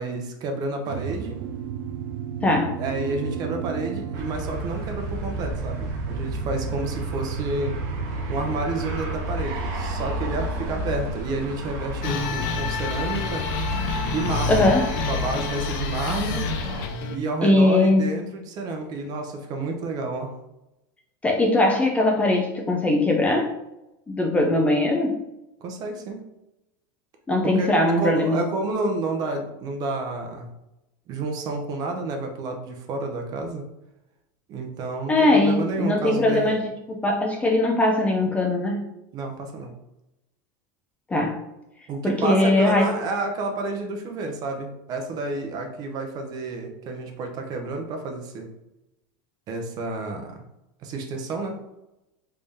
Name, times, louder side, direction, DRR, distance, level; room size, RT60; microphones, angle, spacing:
voice 1, 0.0-1.4 2.8-7.8 8.3-13.5 14.1-14.7 15.1-16.5 17.1-20.3 25.6-26.2 27.4-27.7 28.0-30.5 31.1-33.6 34.5-36.6 39.1-39.7 41.9-48.5 49.5-50.4 50.8-51.6, right 2 dB, 35° right, 3 dB, 0.7 m, -30 dB
sound 1, 0.9-13.1, right 6 dB, 85° right, 0.4 m, -33 dB
voice 2, 2.4-2.8 14.5-14.9 17.4-18.1 21.2-23.5 24.1-25.2 27.3-28.4 35.1-38.9 41.1-41.4 42.0-42.9, left 2 dB, 10° left, 1 dB, 0.4 m, -20 dB
sound 2, 4.1-16.9, left 1 dB, 60° right, 0.9 m, -32 dB
sound 3, 12.0-17.2, left 5 dB, 60° left, 0.5 m, -29 dB
3.3 x 2.7 x 3.5 m, 0.92 s
supercardioid pair, 145°, 11 cm